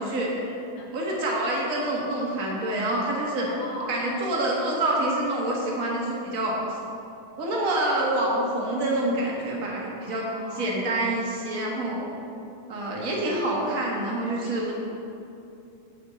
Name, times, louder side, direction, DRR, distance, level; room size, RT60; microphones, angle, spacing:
voice 1, 0.0-0.9 3.4-4.0 10.0-10.9 14.4-14.7, left 1 dB, 60° left, -3 dB, 2.6 m, -41 dB
voice 2, 0.9-3.5 3.9-6.5 7.4-12.0 12.7-14.7, right 1 dB, 35° right, -3 dB, 1.5 m, -27 dB
9.5 x 4.9 x 6.9 m, 2.7 s
omnidirectional pair, 3.4 m